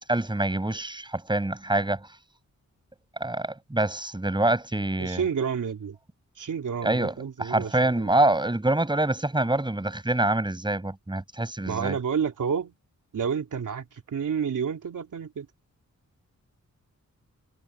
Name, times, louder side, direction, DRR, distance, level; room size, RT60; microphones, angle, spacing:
voice 1, 0.1-2.1 3.2-5.2 6.8-7.1 7.4-12.0, right 2 dB, 15° right, 6.6 m, -25 dB
voice 2, 5.0-6.0 6.4-8.2 11.7-12.7 13.1-15.5, right 7 dB, 90° right, 3.5 m, -30 dB
wide cardioid pair, 115°, 30 cm